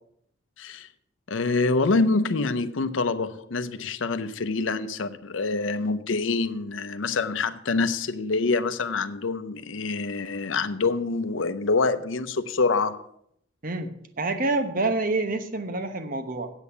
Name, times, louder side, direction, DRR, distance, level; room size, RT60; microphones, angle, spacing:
voice 1, 1.3-13.1, left 3 dB, 85° left, 0.7 m, -26 dB
voice 2, 14.2-16.5, right 2 dB, 45° right, 1.0 m, -27 dB
8.4 x 8.2 x 7.0 m
head